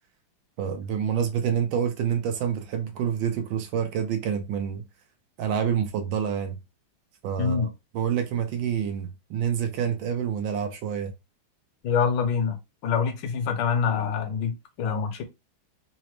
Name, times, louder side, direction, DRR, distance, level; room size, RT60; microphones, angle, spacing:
voice 1, 0.6-4.8 5.4-6.6 7.2-11.1, right 8 dB, 75° right, 1.2 m, -27 dB
voice 2, 11.8-12.6 12.8-15.2, left 6 dB, 70° left, 1.3 m, -25 dB
3.9 x 2.0 x 3.0 m
omnidirectional pair, 2.2 m